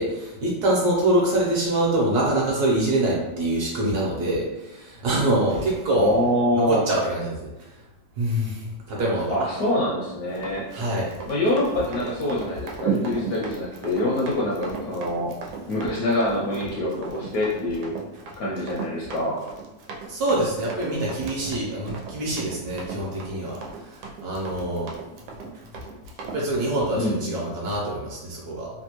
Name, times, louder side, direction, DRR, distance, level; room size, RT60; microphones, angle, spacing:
voice 1, 0.0-6.1 6.5-7.4 8.2-9.4 10.7-11.1 20.1-23.6 24.2-24.9 26.3-28.7, right 1 dB, 65° right, -4 dB, 1.2 m, -24 dB
voice 2, 5.9-6.8 9.3-10.6 11.3-15.3 15.7-18.0 18.4-19.4 26.9-27.2, left 1 dB, 70° left, -4 dB, 0.9 m, -25 dB
Run, 10.3-26.4, right 5 dB, 90° right, 1.3 m, -36 dB
3.3 x 2.2 x 2.9 m, 0.96 s
omnidirectional pair, 2.0 m